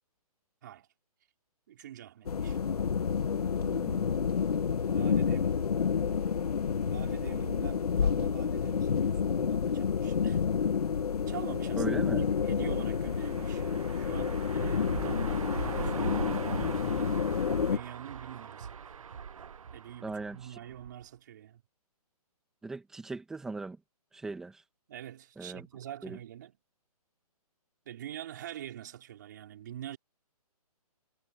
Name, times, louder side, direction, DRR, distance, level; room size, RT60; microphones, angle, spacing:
voice 1, 1.7-2.6 4.8-5.5 6.8-10.4 11.3-13.7 13.9-17.3 17.7-18.7 19.7-21.6 24.9-26.6 27.8-30.0, right 11 dB, 30° right, 4.5 m, -45 dB
sound 1, 2.3-17.8, left 6 dB, 75° left, 1.3 m, -29 dB
voice 2, 3.6-4.1 11.8-12.2 20.0-20.6 22.6-23.8 24.1-24.6 25.4-25.7 26.0-26.2, right 3 dB, ahead, 1.4 m, -39 dB
sound 2, 11.8-21.0, right 7 dB, 60° right, 0.8 m, -40 dB
hypercardioid pair, 180°, 20 cm